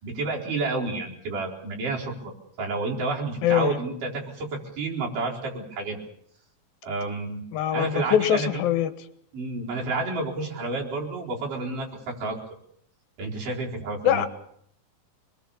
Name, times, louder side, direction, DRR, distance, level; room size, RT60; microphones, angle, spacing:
voice 1, 0.0-2.3 2.6-6.0 6.8-7.4 7.7-8.6 9.3-12.4 13.2-14.3, right 3 dB, 65° right, -2 dB, 5.9 m, -30 dB
voice 2, 3.4-3.8 7.5-8.9 14.0-14.3, left 10 dB, 80° left, 12 dB, 3.0 m, -23 dB
25.5 x 21.0 x 7.1 m, 0.68 s
omnidirectional pair, 4.1 m